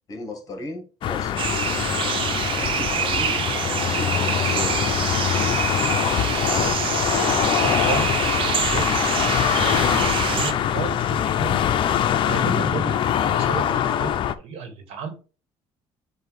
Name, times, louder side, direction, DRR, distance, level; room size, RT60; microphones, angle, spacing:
voice 1, 0.1-1.7 2.5-4.9, left 2 dB, 35° left, 1.8 m, -37 dB
sound 1, 1.0-14.3, left 10 dB, 55° left, 0.5 m, -23 dB
sound 2, 1.4-10.5, right 7 dB, 55° right, 0.8 m, -26 dB
voice 2, 7.1-11.6 12.2-15.1, right 5 dB, 80° right, 1.7 m, -34 dB
7.9 x 2.7 x 4.7 m
cardioid pair, 115°, 11 cm